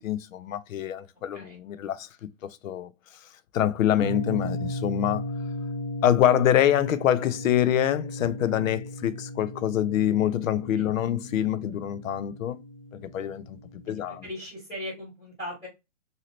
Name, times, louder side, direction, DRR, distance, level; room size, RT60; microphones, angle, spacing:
voice 1, 0.0-2.1 2.6-2.9 3.5-5.2 6.0-12.6 13.0-13.6 13.9-14.3, left 11 dB, 80° left, 0.6 m, -25 dB
sound 1, 4.0-14.2, left 1 dB, 45° left, 1.1 m, -36 dB
voice 2, 13.8-15.7, left 1 dB, 10° left, 1.0 m, -39 dB
2.9 x 2.7 x 2.9 m
hypercardioid pair, 175°, 39 cm